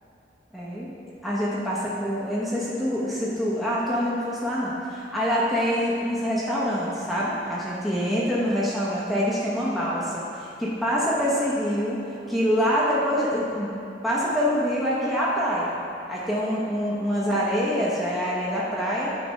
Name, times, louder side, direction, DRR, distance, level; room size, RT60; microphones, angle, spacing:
voice 1, 0.5-0.9 1.2-13.7 14.0-15.7 16.1-19.1, equal, ahead, -8 dB, 0.9 m, -25 dB
9.6 x 3.4 x 5.2 m, 2.8 s
head